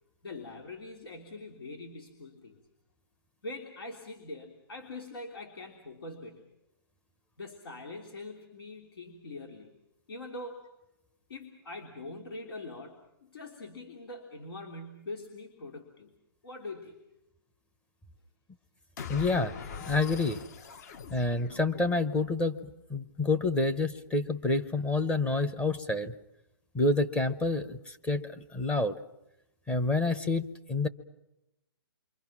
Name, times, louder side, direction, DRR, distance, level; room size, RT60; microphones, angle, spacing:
voice 1, 0.2-2.6 3.4-6.5 7.4-9.7 10.1-10.6 11.3-16.1 16.4-16.9, left 2 dB, 80° left, 3 dB, 3.2 m, -43 dB
sound 1, 19.0-22.3, left 6 dB, 45° left, 1.1 m, -43 dB
voice 2, 19.1-19.5 19.9-20.4 21.1-22.6 22.9-26.1 26.7-29.0 29.7-30.9, left 2 dB, 10° left, 11 dB, 0.8 m, -28 dB
28.0 x 24.5 x 6.0 m, 0.89 s
hypercardioid pair, 155°, 12 cm